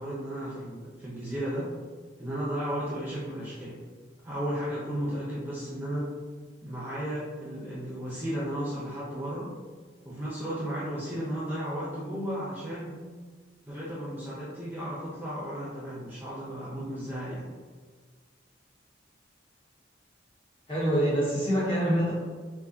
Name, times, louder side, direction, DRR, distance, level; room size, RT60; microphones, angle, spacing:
voice 1, 0.0-1.7 2.2-3.8 4.2-6.1 6.6-9.5 10.0-13.0 13.6-17.5, equal, 10° right, -8 dB, 0.8 m, -34 dB
voice 2, 20.7-22.1, equal, 30° left, -8 dB, 1.5 m, -25 dB
4.5 x 3.7 x 2.8 m, 1.5 s
head